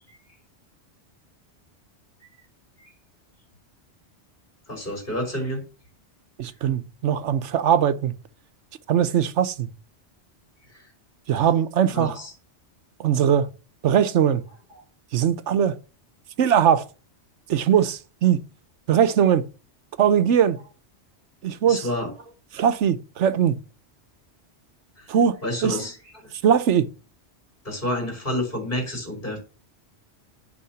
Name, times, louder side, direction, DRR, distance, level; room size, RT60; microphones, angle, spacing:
voice 1, 4.7-5.6 10.7-10.8 11.9-12.3 21.7-22.3 25.0-25.1 25.4-26.3 27.6-29.4, left 1 dB, 45° left, 3.9 m, -29 dB
voice 2, 6.4-8.1 8.9-9.7 11.3-12.1 13.0-13.5 13.8-14.4 15.1-15.8 16.4-16.8 17.5-18.4 18.9-19.5 20.0-20.6 21.4-21.9 22.5-23.6 25.1-25.4 25.6-25.8 26.4-26.9, right 8 dB, 90° right, 1.1 m, -20 dB
8.5 x 4.8 x 6.9 m
omnidirectional pair, 1.2 m